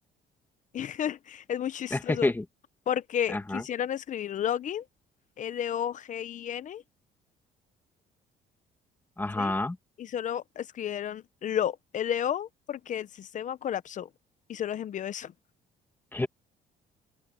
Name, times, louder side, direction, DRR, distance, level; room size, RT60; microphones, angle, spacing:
voice 1, 0.7-2.3 2.9-4.8 5.4-6.8 9.4-9.5 10.0-14.1 14.5-15.3, left 9 dB, 50° left, 1.0 m, -32 dB
voice 2, 1.9-2.4 3.3-3.6 9.2-9.8 16.1-16.3, left 2 dB, 10° left, 2.2 m, -28 dB
open air
cardioid pair, 110°, 17 cm